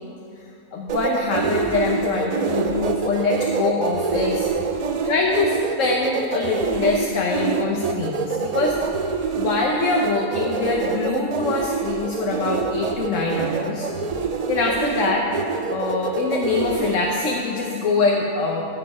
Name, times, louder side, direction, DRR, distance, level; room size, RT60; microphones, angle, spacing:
voice 1, 0.7-4.5 5.0-8.8 9.4-13.9 14.5-15.3 15.7-18.6, left 3 dB, 70° left, -1 dB, 1.3 m, -24 dB
sound 1, 0.9-16.9, right 5 dB, 75° right, 0.3 m, -26 dB
14.0 x 7.5 x 5.4 m, 2.7 s
omnidirectional pair, 1.4 m